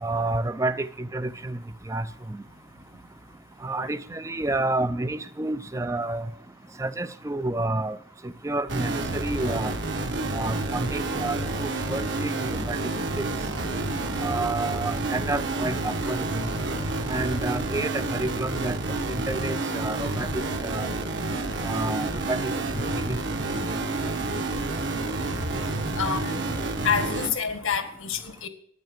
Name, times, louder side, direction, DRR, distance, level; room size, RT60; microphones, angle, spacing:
voice 1, 0.0-1.6 1.9-2.0 3.6-6.3 6.8-8.0 8.4-9.7 10.3-12.8 13.2-13.3 14.2-16.5 17.1-18.8 19.1-20.9 21.6-23.2, right 2 dB, 15° right, 0.5 m, -29 dB
sound 1, 8.7-27.3, right 2 dB, 60° right, 1.5 m, -29 dB
voice 2, 25.9-26.3 26.8-28.5, left 6 dB, 85° left, 1.8 m, -27 dB
12.0 x 10.0 x 7.3 m
head